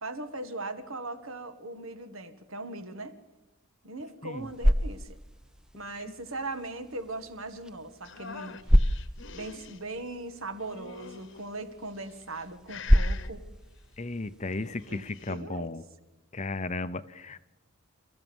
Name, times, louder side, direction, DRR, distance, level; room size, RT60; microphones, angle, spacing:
voice 1, 0.0-3.2 3.8-5.2 5.8-8.7 9.3-13.5 14.6-15.0 15.3-15.7, right 2 dB, 70° right, 9 dB, 1.9 m, -39 dB
sound 1, 4.2-15.3, equal, 5° right, 0.7 m, -30 dB
sound 2, 8.0-9.8 10.6-11.4 12.1-12.4 12.7-13.3 14.6-15.4, left 6 dB, 55° left, 1.3 m, -45 dB
voice 2, 14.0-15.8 16.3-17.4, left 3 dB, 30° left, 13 dB, 0.7 m, -35 dB
28.0 x 14.5 x 7.2 m, 1.1 s
head